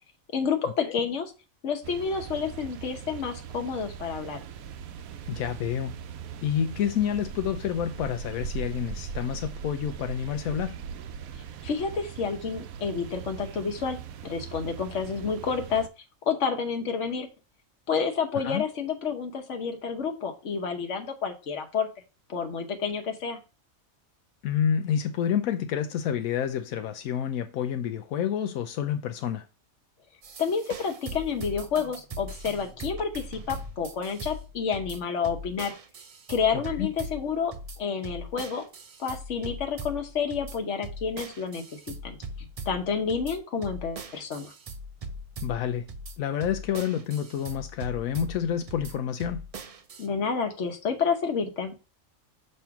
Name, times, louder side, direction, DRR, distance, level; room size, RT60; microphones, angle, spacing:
voice 1, 0.3-1.3 1.6-4.4 11.6-14.0 14.2-15.9 16.3-17.3 17.9-21.9 22.3-23.4 30.4-35.7 36.3-38.6 39.0-44.5 50.0-51.8, left 6 dB, 60° left, 1.3 m, -29 dB
sound 1, 1.8-15.9, right 7 dB, 85° right, 1.1 m, -40 dB
voice 2, 5.3-6.0 6.4-10.7 18.4-18.6 24.4-29.5 36.5-36.9 45.4-45.9 46.2-49.5, left 9 dB, 85° left, 1.1 m, -29 dB
sound 2, 30.2-50.1, right 1 dB, 70° right, 0.3 m, -40 dB
6.5 x 3.2 x 5.7 m
omnidirectional pair, 1.4 m